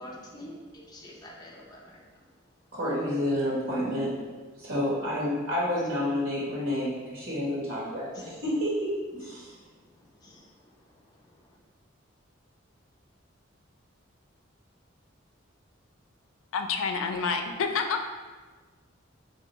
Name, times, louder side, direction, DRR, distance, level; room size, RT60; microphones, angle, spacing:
voice 1, 0.0-2.3 5.9-6.1 8.1-8.4 9.3-11.6, left 1 dB, 20° left, -3 dB, 0.5 m, -48 dB
voice 2, 2.7-4.2 4.6-9.6, left 1 dB, 90° right, -6 dB, 1.2 m, -29 dB
voice 3, 16.5-18.0, left 5 dB, 80° left, 5 dB, 0.4 m, -28 dB
3.4 x 2.6 x 3.0 m, 1.3 s
head